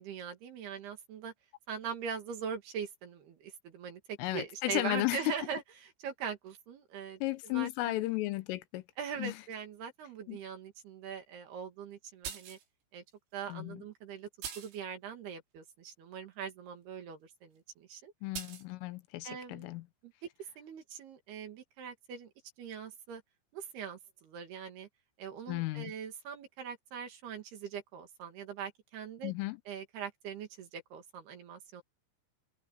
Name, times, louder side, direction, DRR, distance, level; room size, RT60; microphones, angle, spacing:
voice 1, 0.0-1.3 1.7-8.0 9.0-12.6 12.9-13.0 13.3-14.3 14.6-18.1 19.2-19.7 20.0-20.3 20.6-22.3 22.6-23.2 23.5-24.9 25.2-29.3 29.7-31.8, right 7 dB, 60° right, 3.7 m, -42 dB
voice 2, 4.2-5.3 7.2-8.8 9.2-9.4 10.3-10.4 13.5-13.8 18.2-19.8 25.5-25.9 29.2-29.6, left 18 dB, 80° left, 3.5 m, -34 dB
sound 1, 12.2-12.7 13.5-13.6 14.4-14.8 18.3-18.7, right 8 dB, 85° right, 6.5 m, -42 dB
omnidirectional pair, 5.8 m